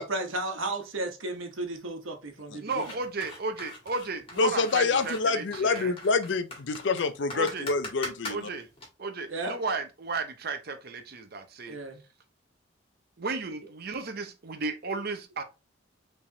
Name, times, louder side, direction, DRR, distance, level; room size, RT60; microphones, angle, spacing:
voice 1, 0.0-2.8 9.3-9.6 11.7-12.0, right 2 dB, 90° right, 1.2 m, -34 dB
voice 2, 2.6-5.9 7.3-7.7 8.3-8.7 9.0-11.8 13.2-15.4, right 3 dB, 50° right, 0.8 m, -34 dB
sound 1, 2.7-8.9, left 2 dB, 30° left, 1.8 m, -41 dB
voice 3, 4.4-8.4, left 4 dB, 65° left, 0.5 m, -27 dB
5.1 x 3.4 x 2.7 m
head